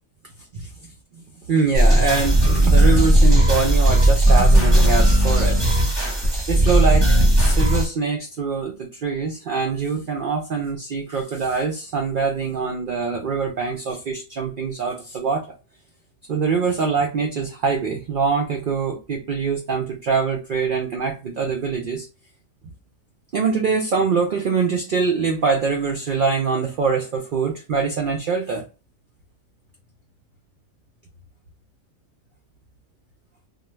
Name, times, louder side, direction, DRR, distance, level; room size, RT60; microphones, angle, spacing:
voice 1, 1.5-5.6 6.5-15.5 16.3-22.1 23.3-28.6, right 5 dB, 65° right, 2 dB, 0.5 m, -24 dB
sound 1, 1.7-7.9, right 1 dB, 20° right, 0.9 m, -16 dB
2.2 x 2.2 x 3.0 m, 0.30 s
omnidirectional pair, 1.3 m